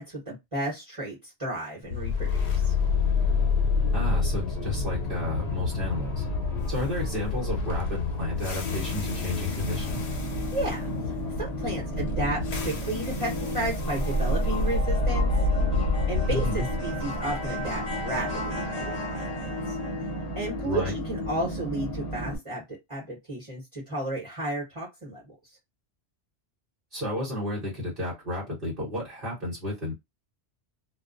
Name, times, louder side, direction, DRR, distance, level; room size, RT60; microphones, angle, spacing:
voice 1, 0.0-2.7 10.5-10.9 11.4-15.3 16.1-19.8 20.3-25.3, right 1 dB, 30° right, -3 dB, 1.1 m, -33 dB
sound 1, 1.9-20.0, left 3 dB, 80° left, 0.9 m, -28 dB
voice 2, 3.9-6.2 6.7-10.0 16.3-16.7 20.6-20.9 26.9-29.9, left 1 dB, 55° right, -4 dB, 1.2 m, -32 dB
sound 2, 8.6-22.4, equal, 40° left, 0.9 m, -33 dB
2.3 x 2.3 x 2.4 m, 0.20 s
omnidirectional pair, 1.1 m